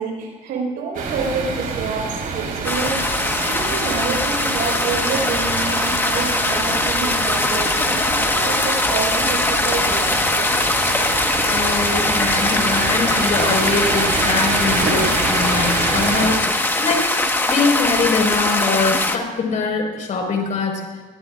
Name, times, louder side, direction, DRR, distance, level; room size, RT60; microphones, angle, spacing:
voice 1, 0.0-3.1 3.4-10.5, right 5 dB, 80° right, -2 dB, 5.4 m, -28 dB
sound 1, 0.9-16.3, right 4 dB, 55° right, 3.7 m, -27 dB
sound 2, 2.6-19.2, left 2 dB, 15° left, 1.5 m, -21 dB
voice 2, 11.5-17.1 17.5-20.8, left 4 dB, 50° left, 2 dB, 5.1 m, -23 dB
23.5 x 17.5 x 2.6 m, 1.4 s
cardioid pair, 110°, 17 cm